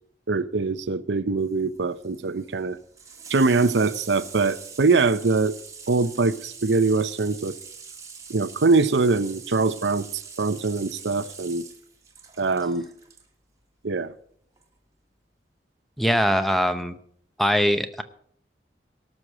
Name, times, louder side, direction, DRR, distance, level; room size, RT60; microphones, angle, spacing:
voice 1, 0.3-2.8 3.3-5.5 5.9-7.5 8.3-10.1 10.4-11.6 12.4-12.9 13.8-14.1, right 3 dB, 90° right, 0.7 m, -23 dB
Water tap faucet / Sink (filling or washing), 1.4-13.2 14.6-14.7, right 5 dB, 20° right, 1.7 m, -43 dB
voice 2, 16.0-17.0 17.4-18.0, equal, ahead, 0.8 m, -22 dB
18.0 x 6.5 x 7.4 m
head